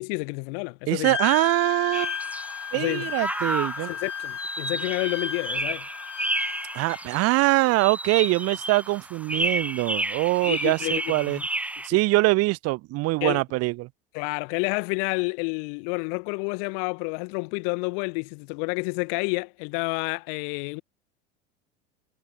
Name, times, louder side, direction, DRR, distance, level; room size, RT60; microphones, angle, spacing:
voice 1, 0.0-1.2 2.7-3.1 3.9-5.9 10.4-11.5 13.2-13.4 14.1-20.8, left 40 dB or more, 50° left, 0.8 m, -29 dB
voice 2, 0.9-2.1 2.7-3.9 6.7-11.4 11.8-13.9, right 21 dB, 45° right, 1.1 m, -23 dB
Wind instrument woodwind instrument, 1.0-7.0, left 9 dB, 85° left, 0.9 m, -34 dB
sound 1, 1.9-11.9, right 1 dB, 5° right, 0.9 m, -32 dB
hypercardioid pair, 85°, 35 cm